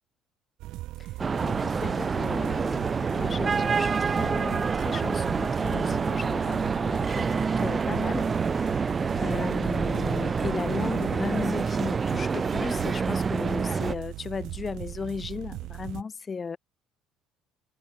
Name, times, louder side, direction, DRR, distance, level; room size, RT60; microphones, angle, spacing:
sound 1, 0.6-16.0, right 17 dB, 75° right, 1.8 m, -39 dB
sound 2, 1.2-13.9, right 5 dB, 30° right, 2.7 m, -27 dB
voice 1, 1.4-16.6, left 5 dB, 30° left, 3.5 m, -36 dB
supercardioid pair, 90°, 0 cm